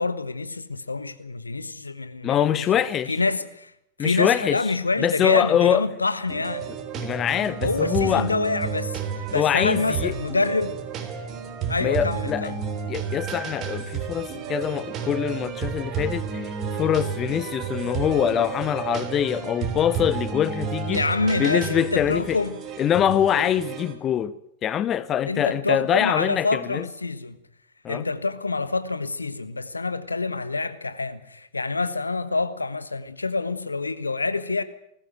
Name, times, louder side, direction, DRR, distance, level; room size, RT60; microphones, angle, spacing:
voice 1, 0.0-2.8 3.1-3.7 4.0-6.7 7.6-10.8 11.7-12.6 20.9-22.6 25.3-27.4 27.9-34.6, left 3 dB, 80° left, 1.3 m, -27 dB
voice 2, 2.2-3.1 4.0-4.6 5.0-5.8 6.9-8.3 9.3-10.1 11.8-12.5 12.9-21.0 21.3-22.4 22.8-24.3 24.6-26.8 27.8-28.0, left 10 dB, 30° left, 0.8 m, -24 dB
sound 1, 6.3-23.9, right 6 dB, 35° right, 3.2 m, -31 dB
20.0 x 14.5 x 9.3 m
figure-of-eight pair, 90°, 0 cm